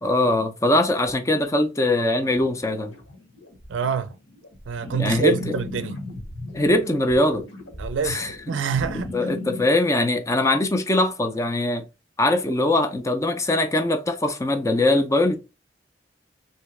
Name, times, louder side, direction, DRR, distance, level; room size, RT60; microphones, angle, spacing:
voice 1, 0.0-2.9 5.0-5.5 6.5-7.4 8.0-8.6 9.1-11.8 12.2-15.4, left 2 dB, 15° left, 0.4 m, -22 dB
sound 1, 2.2-9.7, left 2 dB, 80° left, 1.7 m, -37 dB
voice 2, 3.7-4.1 4.7-6.0 7.8-9.1, right 6 dB, 85° right, 0.4 m, -26 dB
3.3 x 2.7 x 3.2 m
head